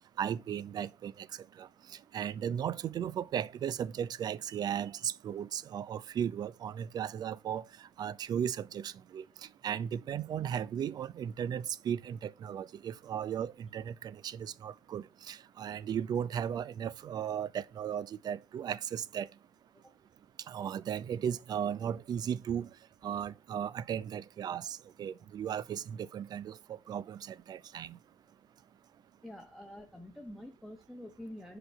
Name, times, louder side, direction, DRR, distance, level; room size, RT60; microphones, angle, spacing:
voice 1, 0.2-1.3 1.6-7.7 8.0-9.2 9.6-19.3 20.5-22.7 23.0-28.0, right 9 dB, 45° right, 0.5 m, -36 dB
voice 2, 29.2-31.6, left 1 dB, ahead, 1.1 m, -47 dB
5.1 x 4.0 x 5.8 m
hypercardioid pair, 65°, 9 cm